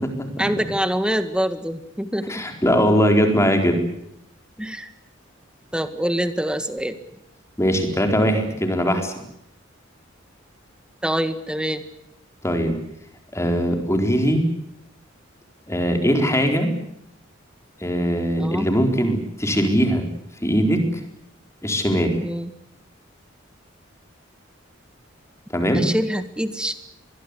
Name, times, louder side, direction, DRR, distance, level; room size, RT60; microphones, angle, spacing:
voice 1, 0.4-2.4 4.6-4.9 5.7-7.0 11.0-11.9 18.4-18.7 22.2-22.5 25.7-26.7, equal, 5° right, 10 dB, 1.8 m, -25 dB
voice 2, 2.3-3.8 7.6-9.1 12.4-12.8 13.3-14.4 15.7-16.7 17.8-20.1 20.4-20.8 21.6-22.2 25.5-25.9, equal, 15° left, 5 dB, 4.3 m, -20 dB
24.5 x 21.5 x 8.4 m, 0.78 s
head